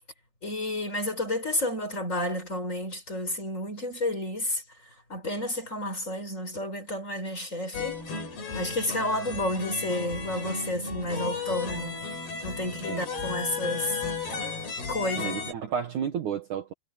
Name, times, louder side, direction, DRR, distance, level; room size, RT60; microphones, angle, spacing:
voice 1, 0.4-4.6 5.1-8.0 8.5-12.0 12.4-14.0 14.9-15.4, left 1 dB, 20° left, 4.4 m, -31 dB
sound 1, 7.7-15.5, left 4 dB, 85° left, 8.4 m, -34 dB
voice 2, 15.2-16.7, right 8 dB, 60° right, 2.6 m, -32 dB
omnidirectional pair, 4.5 m